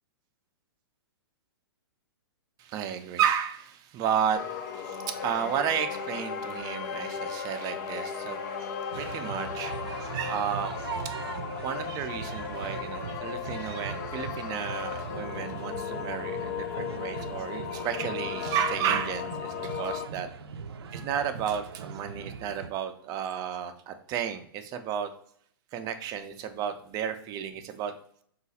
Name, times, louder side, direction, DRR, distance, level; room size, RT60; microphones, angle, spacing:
voice 1, 2.6-11.1 11.6-20.3 20.9-25.1 25.7-27.9, right 8 dB, 30° right, 7 dB, 0.5 m, -32 dB
sound 1, 4.3-20.1, left 7 dB, 45° left, 0.4 m, -36 dB
sound 2, 8.9-22.7, right 6 dB, 85° right, 0.4 m, -40 dB
3.9 x 2.4 x 4.0 m, 0.63 s
hypercardioid pair, 130°, 13 cm